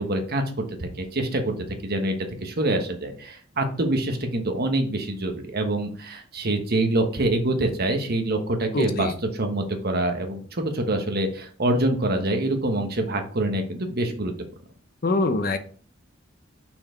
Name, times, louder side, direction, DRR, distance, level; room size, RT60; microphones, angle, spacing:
voice 1, 0.0-1.6 1.8-2.1 2.4-14.3, right 1 dB, 50° right, 5 dB, 1.2 m, -25 dB
voice 2, 8.7-9.1 15.0-15.6, left 2 dB, 45° left, 8 dB, 0.7 m, -23 dB
5.8 x 4.6 x 4.5 m, 0.43 s
head